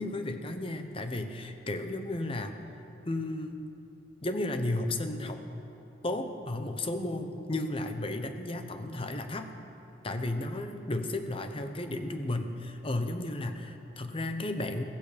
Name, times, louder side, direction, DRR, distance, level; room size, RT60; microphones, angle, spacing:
voice 1, 0.0-2.5 3.0-3.6 4.2-5.4 6.0-9.5 10.0-14.8, left 2 dB, 30° left, 7 dB, 0.8 m, -33 dB
15.5 x 14.5 x 5.1 m, 2.9 s
head